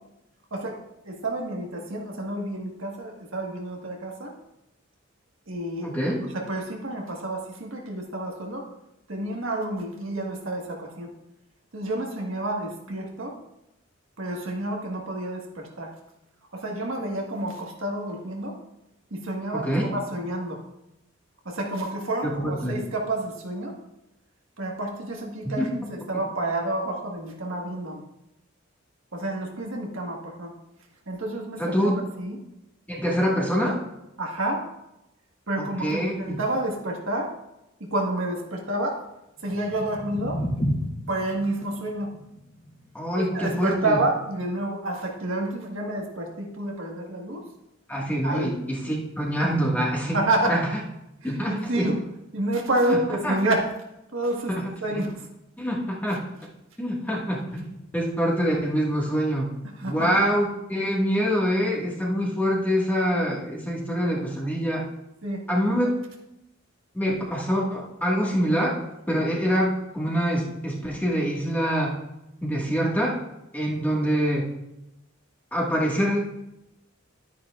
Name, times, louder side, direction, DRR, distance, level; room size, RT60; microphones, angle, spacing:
voice 1, 1.0-4.3 5.5-5.9 6.3-8.7 9.1-11.1 11.7-13.4 14.2-15.9 16.5-18.6 19.1-20.6 21.4-23.7 24.6-28.0 29.1-30.5 31.1-31.7 32.2-32.4 33.1-33.2 34.2-34.6 35.5-37.3 37.8-39.0 39.4-40.4 41.1-42.1 43.3-47.4 48.2-48.5 50.1-50.6 51.2-52.0 52.3-53.7 54.1-54.5 54.8-55.3 59.8-60.2 65.2-65.4, right 1 dB, 70° right, 0 dB, 1.6 m, -29 dB
voice 2, 5.8-6.2 19.5-19.9 22.4-22.8 25.4-25.5 31.6-32.0 32.9-33.8 35.6-36.4 42.9-44.0 47.9-50.2 50.5-50.6 51.2-51.9 52.9-53.0 53.2-53.3 54.5-54.6 54.9-55.0 55.6-56.2 56.8-59.5 59.8-64.8 65.5-65.9 66.9-68.8 69.1-72.0 72.4-73.2 73.5-74.5 75.5-76.2, equal, 10° left, -3 dB, 1.8 m, -25 dB
sound 1, 39.4-45.5, equal, 35° left, 3.1 m, -34 dB
11.5 x 9.7 x 2.5 m, 0.89 s
head